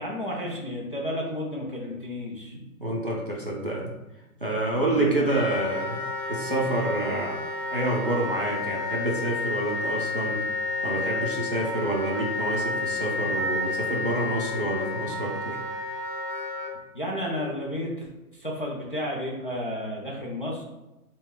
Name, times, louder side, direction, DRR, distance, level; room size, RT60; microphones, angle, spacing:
voice 1, 0.0-2.6 4.7-5.3 16.9-18.1 18.3-20.6, left 1 dB, 35° left, -4 dB, 0.5 m, -32 dB
voice 2, 2.5-3.9 4.4-6.0 6.3-7.4 7.7-10.4 10.8-15.6, right 1 dB, 40° right, -4 dB, 0.4 m, -28 dB
Wind instrument woodwind instrument, 5.3-16.7, left 3 dB, 85° left, 1.0 m, -31 dB
4.0 x 2.2 x 3.5 m, 1.0 s
hypercardioid pair, 175°, 45 cm